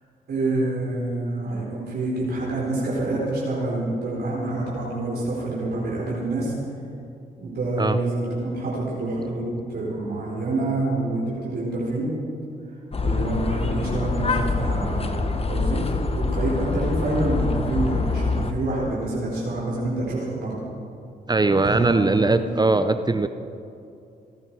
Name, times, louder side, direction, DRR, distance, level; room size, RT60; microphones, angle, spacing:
voice 1, 0.3-6.5 7.4-12.1 13.0-20.5 21.6-22.5, right 2 dB, 70° right, -6 dB, 4.6 m, -27 dB
sound 1, 12.9-18.5, left 3 dB, 35° left, 1.3 m, -25 dB
voice 2, 21.3-23.3, right 3 dB, 25° right, 10 dB, 0.7 m, -20 dB
27.5 x 9.8 x 4.8 m, 2.6 s
supercardioid pair, 55°, 18 cm